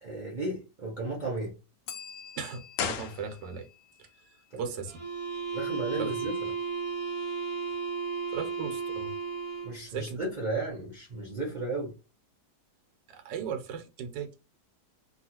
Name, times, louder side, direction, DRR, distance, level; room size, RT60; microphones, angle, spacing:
voice 1, 0.0-1.5 4.5-4.6 5.5-6.4 9.6-12.0, right 2 dB, 60° right, 0.4 m, -34 dB
Bell, 1.9-4.7, left 8 dB, 85° left, 1.3 m, -48 dB
voice 2, 2.4-3.7 4.6-5.0 6.0-6.3 8.3-9.1 9.9-10.2 13.1-14.3, right 7 dB, 90° right, 1.4 m, -37 dB
sound 1, 2.7-3.8 4.1-4.2, left 7 dB, 70° left, 0.9 m, -35 dB
sound 2, 4.9-9.8, right 5 dB, 25° right, 0.7 m, -34 dB
3.1 x 2.4 x 2.8 m
omnidirectional pair, 1.9 m